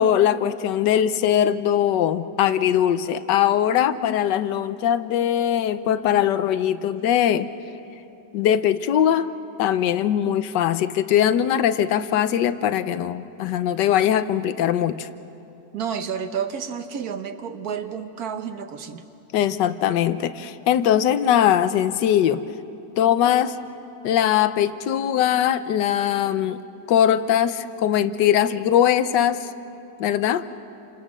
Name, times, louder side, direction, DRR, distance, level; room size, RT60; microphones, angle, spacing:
voice 1, 0.0-7.5 8.3-9.3 9.6-15.1 19.3-22.4 23.0-23.5 24.0-26.6 26.9-29.5 30.0-30.4, left 10 dB, 80° left, 12 dB, 1.4 m, -21 dB
voice 2, 15.7-19.0, right 7 dB, 60° right, 8 dB, 1.5 m, -30 dB
28.5 x 26.5 x 6.2 m, 2.9 s
omnidirectional pair, 1.9 m